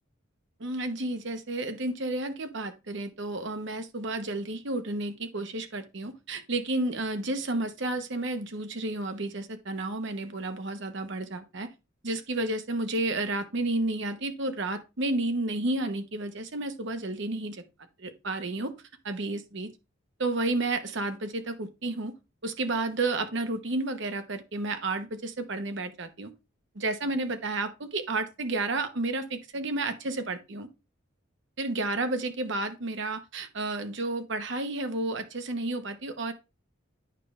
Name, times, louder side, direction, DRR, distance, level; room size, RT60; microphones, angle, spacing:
voice 1, 0.6-11.7 12.0-17.6 18.0-18.7 19.0-19.7 20.2-22.1 22.4-26.3 26.7-30.7 31.6-36.3, right 2 dB, 65° right, 0.9 m, -31 dB
9.3 x 4.9 x 3.1 m
head